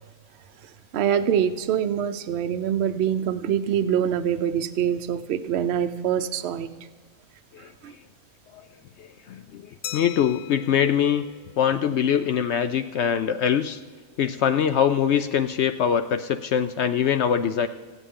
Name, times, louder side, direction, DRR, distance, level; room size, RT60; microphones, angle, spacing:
voice 1, 0.6-6.7 7.8-7.9, right 9 dB, 60° right, 9 dB, 0.8 m, -25 dB
voice 2, 9.0-9.6 9.9-11.2 11.6-13.8 14.2-17.7, left 8 dB, 65° left, 11 dB, 0.7 m, -23 dB
Glass, 9.8-12.3, left 10 dB, 80° left, 1.2 m, -40 dB
24.5 x 8.2 x 3.7 m, 1.5 s
omnidirectional pair, 1.5 m